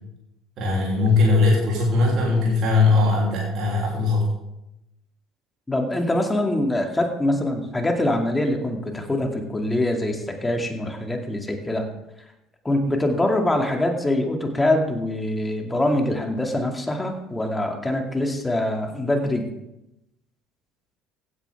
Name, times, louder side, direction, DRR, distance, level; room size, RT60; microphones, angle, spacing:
voice 1, 0.6-4.3, left 3 dB, 50° right, -4 dB, 3.2 m, -20 dB
voice 2, 5.7-11.9 12.6-19.5, left 1 dB, 15° left, 3 dB, 2.3 m, -24 dB
16.0 x 9.4 x 3.6 m, 0.88 s
hypercardioid pair, 60°, 0 cm